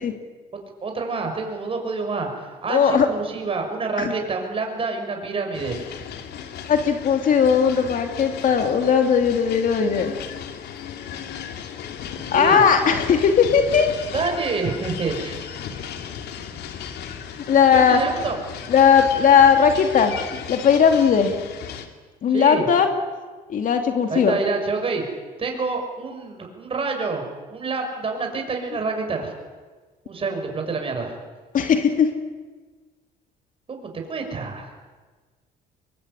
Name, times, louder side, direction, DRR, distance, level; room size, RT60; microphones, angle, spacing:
voice 1, 0.8-5.8 12.3-12.6 14.1-15.5 17.7-18.4 22.3-22.7 24.1-27.2 27.5-29.3 30.0-31.1 33.7-34.7, right 4 dB, 35° right, 3 dB, 6.6 m, -27 dB
voice 2, 2.7-3.1 4.0-4.1 6.7-10.1 12.3-14.0 17.5-18.0 18.7-21.3 22.2-22.9 23.5-24.4 31.5-32.1, left 7 dB, 55° left, 6 dB, 2.8 m, -18 dB
sound 1, 5.5-21.9, left 8 dB, 75° left, 2.8 m, -35 dB
23.0 x 23.0 x 9.9 m, 1.4 s
cardioid pair, 110°, 17 cm